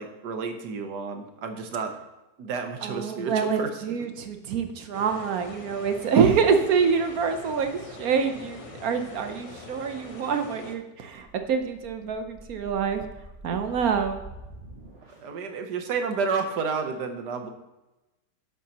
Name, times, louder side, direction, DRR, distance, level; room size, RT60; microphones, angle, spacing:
voice 1, 0.0-2.0 2.4-3.9 15.2-17.5, right 5 dB, 85° right, 6 dB, 1.6 m, -31 dB
voice 2, 2.8-13.1 13.4-14.2, right 6 dB, 65° right, 6 dB, 1.2 m, -26 dB
sound 1, 4.9-10.8, left 3 dB, 60° left, 0.3 m, -44 dB
sound 2, 11.2-15.4, equal, 35° right, 3.2 m, -46 dB
11.0 x 7.5 x 2.9 m, 1.0 s
omnidirectional pair, 1.7 m